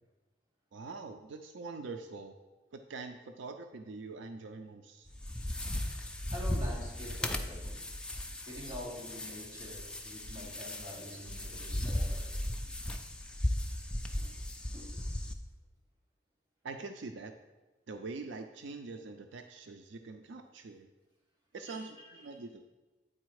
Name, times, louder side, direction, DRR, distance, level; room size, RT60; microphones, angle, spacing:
voice 1, 0.7-2.3 2.7-5.1 16.6-17.3 17.9-20.9 21.5-22.6, right 3 dB, 80° right, 6 dB, 0.4 m, -44 dB
sound 1, 5.1-15.3, left 1 dB, 5° left, 0.3 m, -36 dB
voice 2, 6.3-7.8 8.4-12.3 14.1-14.3 14.7-14.9 21.6-21.9 22.1-22.4, left 1 dB, 25° right, -6 dB, 2.2 m, -46 dB
8.9 x 4.1 x 4.7 m, 1.1 s
head